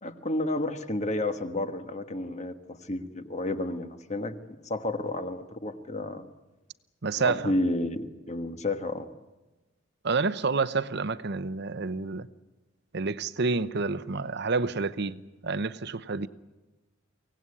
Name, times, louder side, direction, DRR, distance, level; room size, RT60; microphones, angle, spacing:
voice 1, 0.0-4.3 4.6-6.3 7.2-9.1, left 1 dB, 35° left, 1.4 m, -31 dB
voice 2, 7.0-7.5 10.0-12.3 12.9-16.3, right 4 dB, 60° right, 0.8 m, -29 dB
24.5 x 17.5 x 9.8 m
head